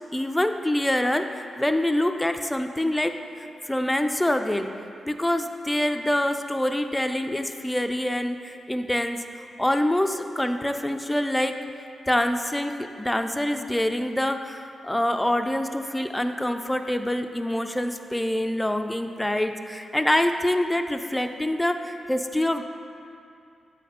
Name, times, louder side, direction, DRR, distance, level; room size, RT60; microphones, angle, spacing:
voice 1, 0.1-4.7 5.1-9.2 9.6-11.6 12.1-22.6, left 1 dB, 10° left, 7 dB, 0.3 m, -25 dB
7.7 x 4.1 x 4.2 m, 2.5 s
cardioid pair, 105°, 0 cm